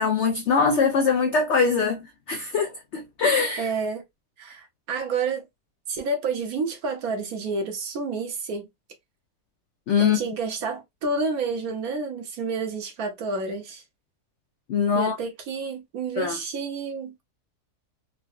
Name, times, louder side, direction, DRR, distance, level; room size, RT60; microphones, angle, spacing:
voice 1, 0.0-3.7 9.9-10.2 14.7-15.2 16.2-16.4, left 5 dB, 75° left, 0.6 m, -22 dB
voice 2, 3.6-4.0 4.4-5.4 5.9-8.7 10.0-13.8 14.9-17.2, right 4 dB, 70° right, 1.3 m, -29 dB
3.8 x 2.2 x 2.3 m
omnidirectional pair, 1.7 m